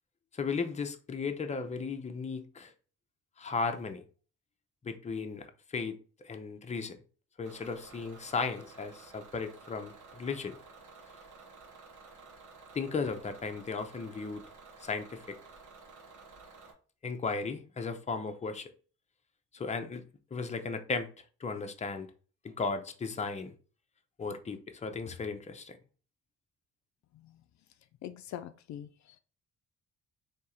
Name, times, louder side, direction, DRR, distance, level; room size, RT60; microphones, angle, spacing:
voice 1, 0.3-2.7 3.4-4.0 4.8-7.0 7.4-10.6 12.7-14.4 14.8-15.4 17.0-18.7 19.5-20.0 20.3-21.1 21.4-22.1 22.4-23.5 24.2-25.8, left 4 dB, 25° left, 0.6 m, -35 dB
Bus / Engine, 7.4-16.7, right 4 dB, 80° right, 1.3 m, -53 dB
voice 2, 28.0-29.2, left 11 dB, 65° left, 0.4 m, -44 dB
3.6 x 2.9 x 4.3 m
cardioid pair, 90°, 30 cm